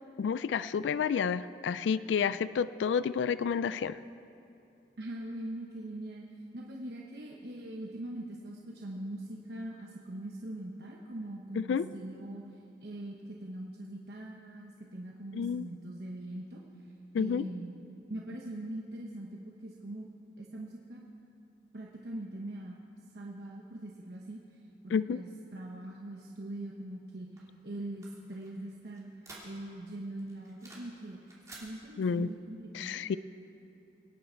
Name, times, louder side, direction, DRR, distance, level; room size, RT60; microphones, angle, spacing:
voice 1, 0.2-4.0 11.6-11.9 15.4-15.7 17.1-17.5 24.9-25.2 32.0-32.3 32.7-33.2, left 6 dB, 85° left, 16 dB, 0.3 m, -30 dB
voice 2, 5.0-6.3 6.5-12.4 12.8-16.6 17.2-17.7 18.1-20.1 20.4-21.1 21.7-22.8 23.1-24.4 24.8-29.1 29.4-31.2 31.5-33.0, right 1 dB, 60° right, -2 dB, 1.0 m, -42 dB
sound 1, 27.4-29.9 30.2-31.0 31.2-31.7, right 2 dB, 20° right, 2.6 m, -52 dB
23.5 x 9.4 x 4.5 m, 2.8 s
head